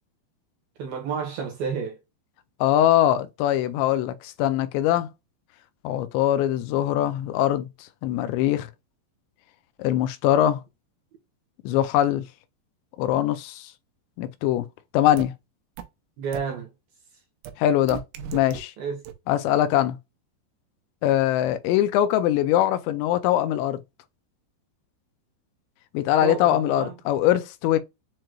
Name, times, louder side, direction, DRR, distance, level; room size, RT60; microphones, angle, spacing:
voice 1, 0.8-2.0 16.2-16.7 18.8-19.0 26.2-26.9, right 6 dB, 70° right, 2.5 m, -30 dB
voice 2, 2.6-5.1 5.8-8.7 9.8-10.6 11.7-12.2 13.0-13.7 14.2-14.7 14.9-15.3 17.6-18.0 18.3-18.7 19.3-20.0 21.0-23.8 25.9-27.8, left 12 dB, 85° left, 2.7 m, -22 dB
sound 1, 15.2-15.3 15.8-15.9 16.3-16.4 17.5-17.6 17.9-18.6 19.1-19.2, right 9 dB, 90° right, 3.1 m, -35 dB
7.6 x 2.9 x 2.3 m
omnidirectional pair, 5.3 m